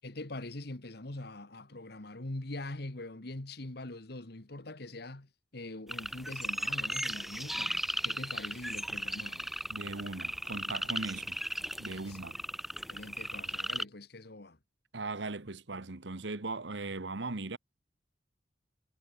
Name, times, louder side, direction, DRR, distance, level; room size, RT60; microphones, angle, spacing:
voice 1, 0.0-7.8 8.0-9.6 11.9-12.2 12.9-14.6, left 2 dB, 60° left, 1.7 m, -43 dB
sound 1, 5.9-13.8, equal, ahead, 2.0 m, -36 dB
voice 2, 9.7-11.4 11.8-12.4 14.9-17.6, right 3 dB, 70° right, 1.3 m, -38 dB
head